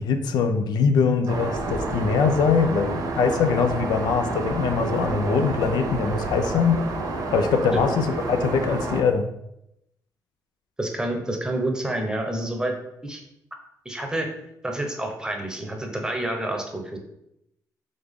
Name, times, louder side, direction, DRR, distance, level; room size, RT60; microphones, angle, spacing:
voice 1, 0.0-6.9 7.3-9.3, left 5 dB, 80° left, 7 dB, 0.4 m, -22 dB
Aircraft, 1.3-9.0, right 3 dB, 60° right, 0.7 m, -29 dB
voice 2, 10.8-12.7 13.0-13.2 13.8-14.3 14.6-17.0, right 1 dB, 10° right, 3 dB, 0.8 m, -28 dB
3.6 x 3.3 x 3.5 m, 0.80 s
cardioid pair, 100°, 7 cm